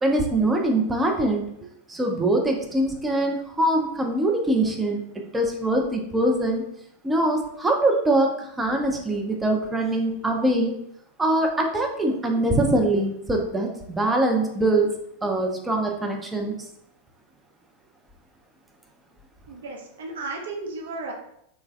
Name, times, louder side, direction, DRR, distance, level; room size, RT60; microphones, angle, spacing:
voice 1, 0.0-1.5 1.9-6.6 7.0-10.7 11.2-14.9 15.2-16.6, right 1 dB, 10° right, 1 dB, 0.5 m, -23 dB
voice 2, 19.5-21.1, right 3 dB, 60° right, 0 dB, 0.6 m, -34 dB
3.2 x 2.2 x 3.3 m, 0.75 s
figure-of-eight pair, 90°, 0 cm